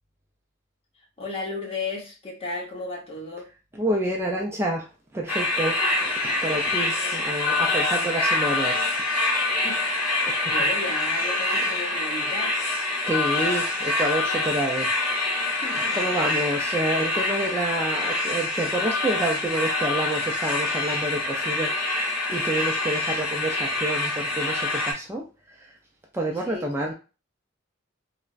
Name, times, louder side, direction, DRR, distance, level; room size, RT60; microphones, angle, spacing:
voice 1, 1.2-3.5 6.8-7.2 9.4-12.5 15.6-16.0 26.5-26.7, left 2 dB, 30° left, -2 dB, 0.8 m, -35 dB
voice 2, 3.7-8.8 10.2-10.5 13.1-14.9 15.5-25.8 26.1-26.9, right 1 dB, 15° right, 0 dB, 0.3 m, -29 dB
sound 1, 5.3-24.9, left 2 dB, 45° left, 1.2 m, -25 dB
3.2 x 2.0 x 2.4 m, 0.32 s
head